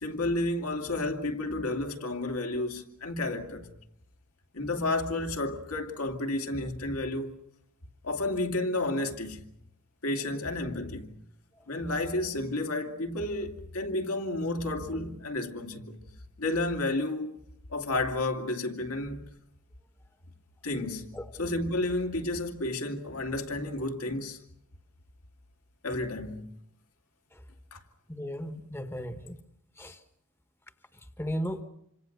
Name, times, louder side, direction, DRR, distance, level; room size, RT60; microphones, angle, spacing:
voice 1, 0.0-3.7 4.5-7.3 8.0-9.4 10.0-11.2 11.7-16.0 16.4-17.4 17.7-19.3 20.6-24.4 25.8-26.5 27.7-27.8, left 2 dB, 75° left, 2.7 m, -31 dB
voice 2, 28.1-29.4 29.8-30.0 31.2-31.6, equal, 10° left, 1.2 m, -35 dB
27.0 x 26.0 x 6.7 m
head